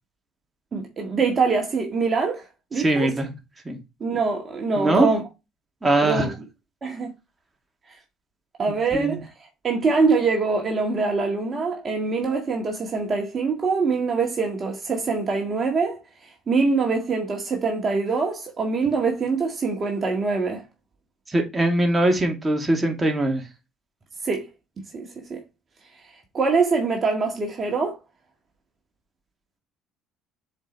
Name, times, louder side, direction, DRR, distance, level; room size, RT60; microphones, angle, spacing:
voice 1, 0.7-2.4 2.7-3.2 4.0-5.2 6.0-6.3 6.8-7.1 8.6-9.3 9.6-16.0 16.5-20.6 24.2-24.5 24.9-25.4 26.3-28.0, right 4 dB, 40° right, 1.7 m, -24 dB
voice 2, 2.8-3.3 3.7-3.8 4.8-5.1 5.8-6.3 8.9-9.2 21.3-23.4, right 1 dB, 20° right, 2.3 m, -21 dB
7.1 x 4.6 x 3.1 m
hypercardioid pair, 70°, 0 cm